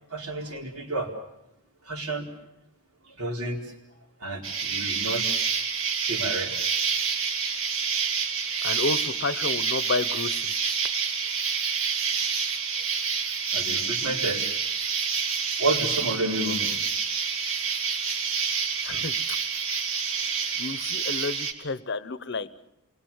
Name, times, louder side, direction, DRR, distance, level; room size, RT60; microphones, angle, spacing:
voice 1, 0.1-1.1 1.9-2.3 3.2-3.7 4.2-5.2 6.0-6.6 13.5-14.5 15.6-16.7, right 2 dB, 90° right, 0 dB, 4.4 m, -30 dB
Insect, 4.4-21.5, right 6 dB, 60° right, 2.2 m, -28 dB
voice 2, 8.6-10.5 18.9-19.1 20.6-22.5, left 3 dB, 50° left, 15 dB, 0.8 m, -30 dB
28.0 x 22.0 x 7.2 m, 0.87 s
head